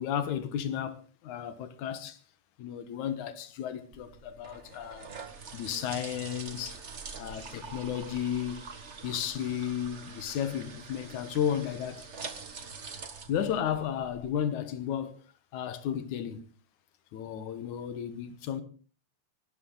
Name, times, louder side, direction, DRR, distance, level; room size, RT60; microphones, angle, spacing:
voice 1, 0.0-2.2 2.6-5.1 5.5-6.8 7.2-8.6 9.0-12.1 13.3-15.2 15.5-16.4 17.1-18.6, left 9 dB, 75° left, 2.8 m, -33 dB
sound 1, 3.9-14.3, right 5 dB, 40° right, 1.0 m, -45 dB
24.5 x 12.5 x 4.0 m
omnidirectional pair, 3.4 m